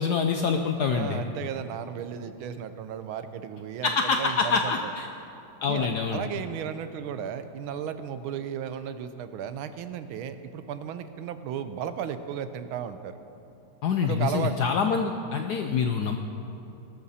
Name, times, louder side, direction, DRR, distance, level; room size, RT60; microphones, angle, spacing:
voice 1, 0.0-1.2 3.8-5.1 5.6-6.2 13.8-16.2, left 5 dB, 70° left, 5 dB, 1.0 m, -26 dB
voice 2, 0.8-4.8 5.7-13.1 14.0-14.5, right 9 dB, 80° right, 11 dB, 1.5 m, -34 dB
19.0 x 13.0 x 4.2 m, 2.9 s
omnidirectional pair, 2.3 m